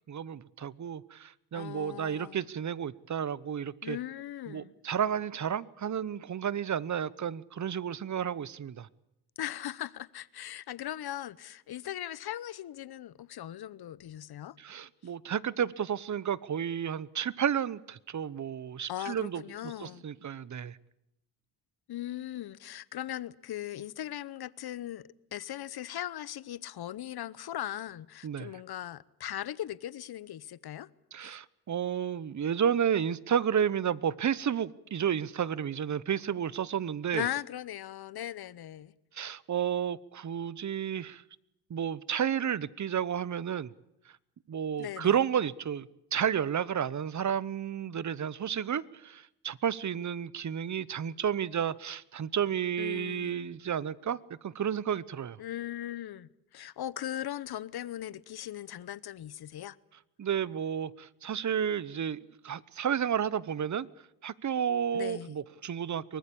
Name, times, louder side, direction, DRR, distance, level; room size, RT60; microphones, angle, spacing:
voice 1, 0.1-4.0 4.5-8.9 14.6-20.8 28.2-28.5 31.1-37.3 39.1-41.2 41.7-43.7 44.5-54.2 54.4-55.4 60.2-63.9 64.2-66.2, right 8 dB, 40° right, 0.9 m, -32 dB
voice 2, 1.5-2.5 3.8-4.7 9.4-14.6 18.9-20.0 21.9-30.9 31.2-31.4 37.1-38.9 44.8-45.2 52.8-53.4 55.4-59.8 64.9-65.3, left 12 dB, 60° left, 0.9 m, -39 dB
24.0 x 19.5 x 8.6 m
cardioid pair, 80°, 42 cm